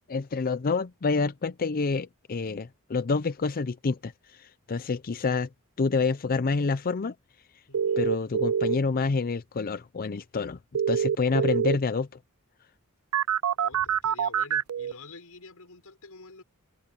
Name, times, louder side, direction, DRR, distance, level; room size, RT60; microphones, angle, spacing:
voice 1, 0.1-5.5 5.8-7.1 8.0-10.6 10.9-12.1, left 4 dB, 40° left, 0.5 m, -28 dB
voice 2, 7.7-8.0 11.2-11.6 13.6-16.4, left 3 dB, 85° left, 5.5 m, -48 dB
sound 1, 7.7-8.8 10.7-11.8 13.1-14.9, right 8 dB, 70° right, 0.4 m, -25 dB
open air
head